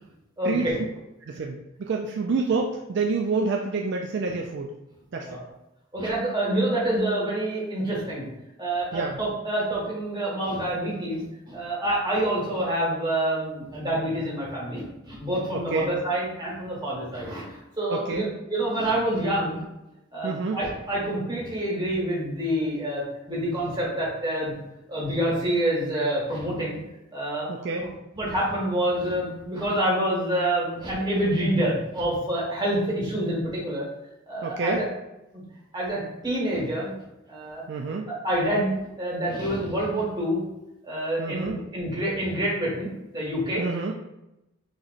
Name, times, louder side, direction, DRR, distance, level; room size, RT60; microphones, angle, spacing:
voice 1, 0.4-0.7 5.2-5.4 5.9-8.3 8.6-17.5 17.8-19.6 20.1-24.5 24.9-26.8 27.1-27.5 27.8-33.8 34.3-34.8 35.7-36.9 37.3-37.6 38.1-38.7 39.0-40.4 40.9-43.6, right 1 dB, 20° right, -6 dB, 1.7 m, -27 dB
voice 2, 1.2-4.7 5.1-5.4 8.9-9.2 15.5-15.9 17.9-18.2 20.2-20.6 27.5-27.8 34.4-34.8 37.7-38.1 41.2-41.6 43.6-43.9, right 4 dB, 55° right, 2 dB, 0.4 m, -28 dB
6.3 x 3.1 x 2.5 m, 0.92 s
head